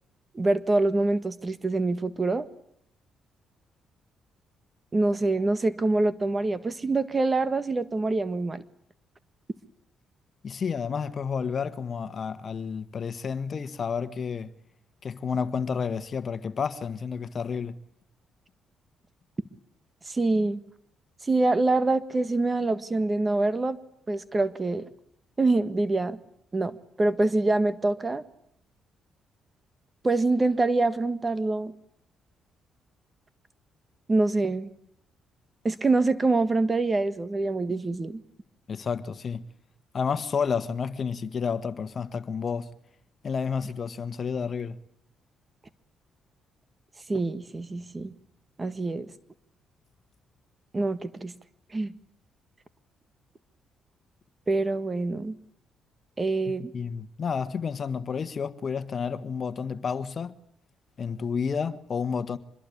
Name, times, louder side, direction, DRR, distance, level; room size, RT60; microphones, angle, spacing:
voice 1, 0.3-2.4 4.9-8.6 20.1-20.6 21.2-23.8 24.1-24.9 25.4-26.2 26.5-28.2 30.0-31.7 34.1-34.7 35.6-38.2 47.1-48.1 48.6-49.1 50.7-51.3 51.7-51.9 54.5-55.4 56.2-56.7, right 2 dB, 25° right, 1.7 m, -25 dB
voice 2, 10.4-14.5 15.0-17.7 38.7-39.4 39.9-42.7 43.2-44.8 56.5-60.3 61.0-62.4, left 6 dB, 45° left, 1.5 m, -30 dB
25.5 x 21.5 x 8.6 m
cardioid pair, 90°, 0 cm